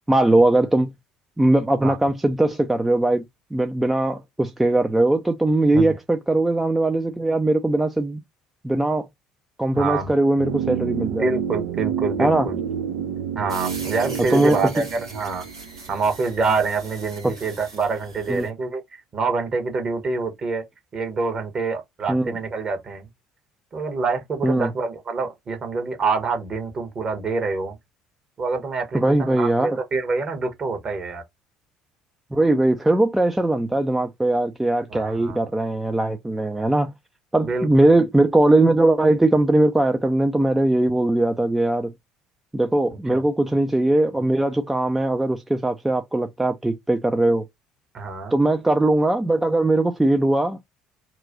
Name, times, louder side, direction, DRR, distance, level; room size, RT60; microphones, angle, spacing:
voice 1, 0.1-0.9 1.4-3.2 3.5-8.2 8.6-9.1 9.6-11.3 12.2-12.5 14.3-14.6 17.2-17.3 18.3-18.5 22.1-22.3 24.4-24.7 28.9-29.7 32.3-36.9 37.3-41.9 42.5-47.4 48.3-50.6, right 2 dB, 10° right, 0.5 m, -20 dB
voice 2, 9.7-10.1 11.1-12.6 13.3-15.4 15.9-20.6 20.9-23.1 23.7-27.8 28.4-31.2 34.9-35.4 37.4-37.9 43.1-43.2 47.9-48.4, right 4 dB, 35° right, 1.3 m, -26 dB
sound 1, 10.4-16.4 16.6-16.7, right 9 dB, 60° right, 0.5 m, -29 dB
sound 2, 13.5-18.5, right 3 dB, 85° right, 1.3 m, -40 dB
3.0 x 2.5 x 3.9 m
figure-of-eight pair, 55°, 2 cm